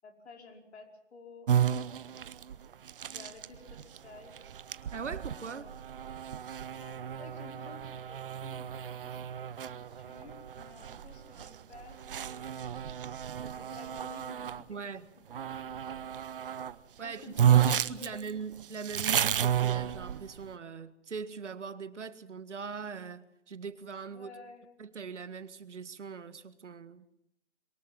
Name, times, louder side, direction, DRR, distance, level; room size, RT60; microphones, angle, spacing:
voice 1, 0.0-2.3 3.1-4.3 5.5-5.8 6.8-9.2 9.6-13.0 13.4-14.8 15.3-15.5 15.9-16.1 16.4-16.5 17.0-18.3 24.1-24.7, left 3 dB, 65° left, 4 dB, 5.4 m, -53 dB
sound 1, 1.5-14.6 15.3-16.7 17.0-17.1 17.4-20.5, right 9 dB, 50° right, 0.9 m, -32 dB
voice 2, 4.9-5.7 14.7-15.1 17.0-24.3 24.8-27.0, right 5 dB, 75° right, 13 dB, 1.8 m, -41 dB
23.0 x 19.5 x 7.6 m, 0.75 s
hypercardioid pair, 150°, 36 cm